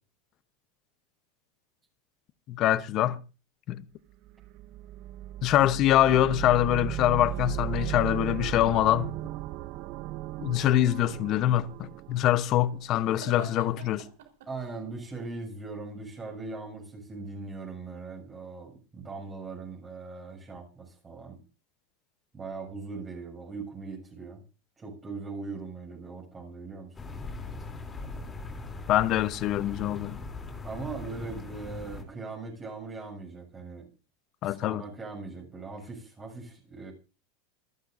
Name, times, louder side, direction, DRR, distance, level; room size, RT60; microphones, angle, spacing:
voice 1, 2.5-3.2 3.7-3.8 5.4-9.1 10.4-14.1 28.9-30.2 34.4-34.8, left 13 dB, 45° left, 0.9 m, -24 dB
sound 1, 4.2-13.1, right 13 dB, 50° right, 0.7 m, -36 dB
sound 2, 6.9-7.8 11.6-14.8, right 8 dB, 80° right, 4.2 m, -49 dB
voice 2, 14.5-21.4 22.3-24.4 24.8-26.9 30.6-33.9 34.4-36.9, right 3 dB, 20° right, 7.2 m, -40 dB
sound 3, 26.9-32.0, left 3 dB, 15° left, 3.3 m, -40 dB
27.5 x 11.0 x 2.7 m
supercardioid pair, 135°, 0 cm